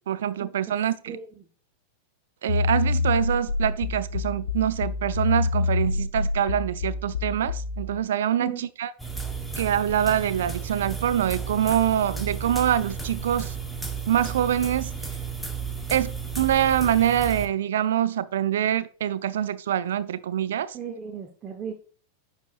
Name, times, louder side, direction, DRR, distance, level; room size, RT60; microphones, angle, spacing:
voice 1, 0.1-1.1 2.4-8.9 9.6-13.5 14.1-14.9 15.9-20.7, right 10 dB, 60° right, 0.4 m, -25 dB
voice 2, 1.0-1.5 8.4-8.7 20.7-21.7, right 6 dB, 25° right, 0.8 m, -36 dB
sound 1, 2.5-8.0, left 3 dB, 70° left, 0.7 m, -27 dB
sound 2, 9.0-17.5, right 6 dB, ahead, 0.8 m, -33 dB
10.5 x 4.4 x 2.5 m
figure-of-eight pair, 90°, 0 cm